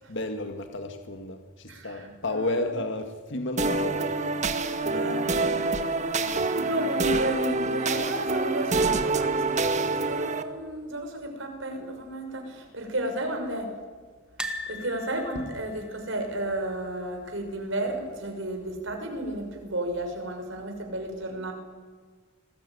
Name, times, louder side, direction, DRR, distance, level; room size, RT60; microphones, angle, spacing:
voice 1, 0.1-4.1, left 2 dB, 60° left, 6 dB, 2.0 m, -32 dB
voice 2, 1.7-2.4 4.8-5.2 6.6-13.7 14.7-21.5, right 1 dB, 65° right, 4 dB, 6.3 m, -33 dB
sound 1, 3.6-10.4, right 3 dB, 35° right, 1.7 m, -26 dB
sound 2, 14.4-17.4 17.7-17.9 18.2-18.3 19.5-20.0 20.6-20.7, left 1 dB, 5° right, 2.0 m, -40 dB
27.5 x 20.0 x 9.6 m, 1.6 s
head